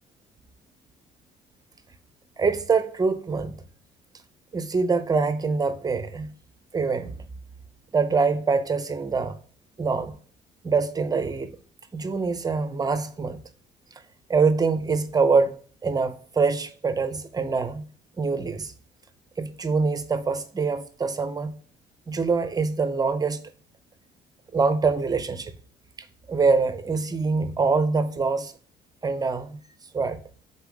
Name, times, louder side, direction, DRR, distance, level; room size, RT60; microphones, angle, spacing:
voice 1, 2.4-3.6 4.5-6.3 6.7-7.2 7.9-9.4 9.8-10.1 10.6-11.5 11.9-13.4 14.3-15.6 15.8-17.9 18.2-18.7 19.4-21.6 22.1-23.4 24.5-25.5 26.3-28.5 29.0-29.6 29.9-30.2, right 4 dB, 20° right, 0.7 m, -24 dB
5.5 x 4.2 x 4.9 m
cardioid pair, 110°, 17 cm